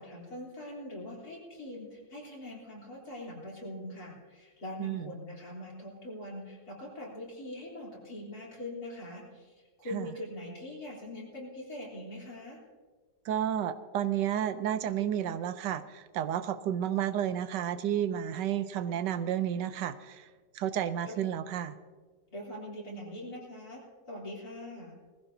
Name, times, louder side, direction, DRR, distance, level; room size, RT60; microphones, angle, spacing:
voice 1, 0.0-12.6 21.1-21.2 22.3-23.8 24.1-24.9, left 1 dB, 60° left, -4 dB, 3.9 m, -42 dB
voice 2, 4.8-5.1 9.9-10.1 13.2-20.3 20.5-21.8, right 10 dB, 80° right, 12 dB, 1.3 m, -31 dB
20.0 x 15.5 x 2.7 m, 1.5 s
omnidirectional pair, 1.8 m